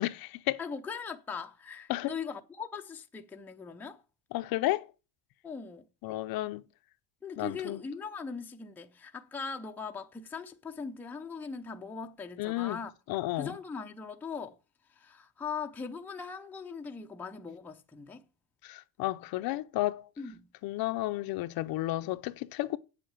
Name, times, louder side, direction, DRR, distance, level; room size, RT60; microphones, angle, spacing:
voice 1, 0.0-0.6 1.9-2.1 4.3-4.9 6.0-6.6 7.4-7.8 12.4-12.8 13.1-13.5 18.6-20.1 20.6-22.8, left 17 dB, 50° left, 0.6 m, -32 dB
voice 2, 0.6-4.0 5.4-5.9 7.2-12.9 13.4-14.6 14.9-18.2 20.2-20.5, left 5 dB, 5° left, 0.5 m, -40 dB
8.2 x 7.7 x 8.6 m
cardioid pair, 170°, 46 cm